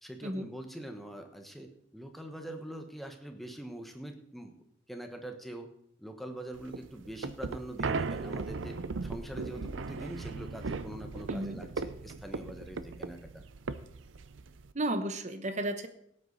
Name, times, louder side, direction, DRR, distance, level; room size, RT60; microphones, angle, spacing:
voice 1, 0.0-4.5 4.9-5.7 6.0-8.8 9.0-13.4, right 1 dB, ahead, 4 dB, 1.2 m, -43 dB
sound 1, 6.6-14.7, right 4 dB, 90° right, 0.6 m, -37 dB
voice 2, 11.3-11.6 14.7-15.9, right 1 dB, 40° right, 9 dB, 0.9 m, -33 dB
17.0 x 8.4 x 4.0 m, 0.70 s
head